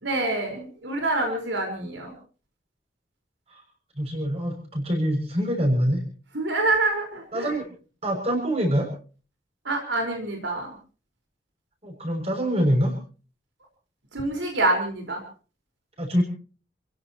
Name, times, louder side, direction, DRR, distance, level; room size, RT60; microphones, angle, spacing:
voice 1, 0.0-2.1 6.3-7.6 9.6-10.7 14.1-15.2, right 2 dB, 90° right, 2 dB, 4.8 m, -26 dB
voice 2, 4.0-6.0 7.3-7.7 8.0-8.9 11.8-12.9 16.0-16.2, equal, 35° right, 2 dB, 7.0 m, -24 dB
29.5 x 16.5 x 3.0 m, 0.38 s
head